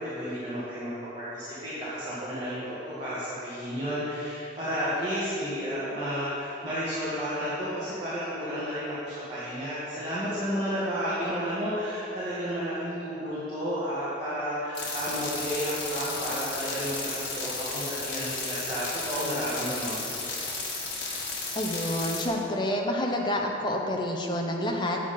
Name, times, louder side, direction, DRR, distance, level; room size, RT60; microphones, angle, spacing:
voice 1, 0.0-20.2, equal, 25° right, -12 dB, 2.1 m, -32 dB
sound 1, 14.7-22.2, left 3 dB, 80° left, 1.9 m, -34 dB
voice 2, 21.5-25.0, left 1 dB, 25° left, 0 dB, 0.9 m, -28 dB
8.8 x 8.3 x 5.6 m, 3.0 s
head